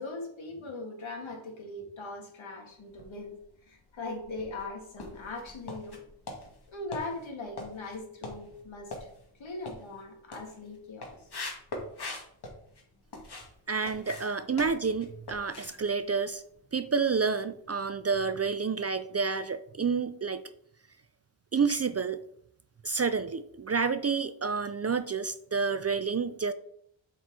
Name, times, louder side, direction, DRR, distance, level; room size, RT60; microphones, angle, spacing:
voice 1, 0.0-6.0 6.7-9.1 9.4-11.3, left 2 dB, 70° left, 3 dB, 2.0 m, -40 dB
sound 1, 2.8-3.6 4.0-13.5 13.8-17.0 17.2-17.5 17.9-18.0, left 2 dB, 50° left, 2.1 m, -43 dB
voice 2, 13.7-16.4 16.7-20.4 21.5-22.2 22.8-26.5, right 5 dB, 35° right, 12 dB, 0.4 m, -29 dB
7.9 x 4.6 x 4.7 m, 0.69 s
wide cardioid pair, 100°, 49 cm